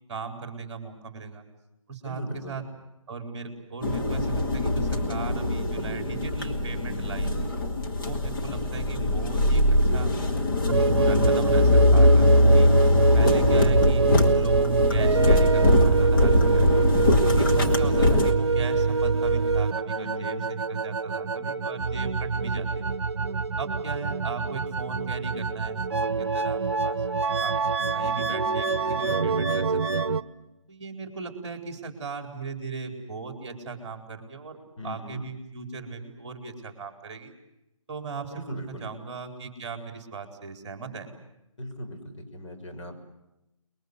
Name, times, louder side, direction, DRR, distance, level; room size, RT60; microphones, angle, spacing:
voice 1, 0.1-1.5 1.9-2.6 3.1-7.4 8.0-10.1 10.9-12.7 13.1-16.7 17.0-23.0 23.6-27.0 27.4-27.6 27.9-30.1 30.7-37.3 37.9-41.1, right 4 dB, 15° right, 5 dB, 4.0 m, -38 dB
voice 2, 2.0-2.6 11.2-11.7 19.9-20.5 28.8-29.5 34.8-35.2 38.3-38.9 41.6-43.0, left 1 dB, 60° left, 2 dB, 6.5 m, -39 dB
sound 1, 3.8-18.3, left 1 dB, 40° left, 2.8 m, -22 dB
sound 2, 10.7-30.2, right 4 dB, 50° right, 1.0 m, -25 dB
30.0 x 22.0 x 8.1 m, 0.91 s
figure-of-eight pair, 155°, 18 cm